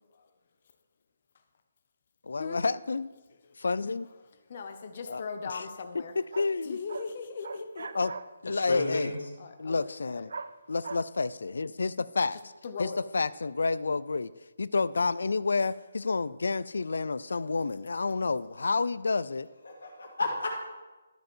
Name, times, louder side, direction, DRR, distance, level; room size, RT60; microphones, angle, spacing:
voice 1, 2.3-3.1 3.6-4.1 5.1-5.7 5.9-6.8 8.0-8.1 8.5-9.1 9.6-10.3 10.7-12.4 12.8-14.3 14.6-19.5, left 4 dB, 75° left, 16 dB, 0.3 m, -29 dB
voice 2, 4.5-6.1 6.7-7.9 9.4-10.3 12.6-13.0, left 5 dB, 35° left, 7 dB, 0.7 m, -38 dB
sound 1, 5.9-6.0 6.3-6.5 6.9-7.1 7.4-8.3 10.3-10.5 10.8-11.0, right 4 dB, 60° right, 0.4 m, -39 dB
voice 3, 8.4-9.2 19.6-20.5, left 2 dB, 90° left, -2 dB, 1.8 m, -32 dB
12.5 x 5.1 x 4.5 m, 1.2 s
hypercardioid pair, 175°, 0 cm